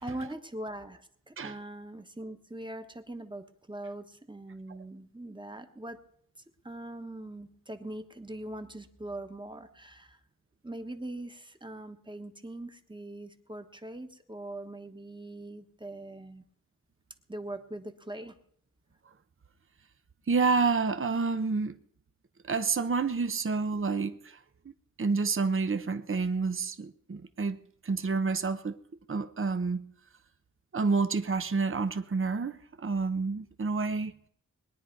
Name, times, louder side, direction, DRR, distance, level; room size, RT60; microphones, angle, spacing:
voice 1, 0.0-6.0 6.6-10.2 10.6-16.4 17.3-18.3, right 1 dB, 15° right, 1.2 m, -41 dB
voice 2, 20.3-21.8 22.4-24.4 25.0-28.8 29.1-29.9 30.7-34.1, right 4 dB, 40° right, 0.7 m, -29 dB
21.0 x 10.0 x 4.6 m
wide cardioid pair, 65°, 33 cm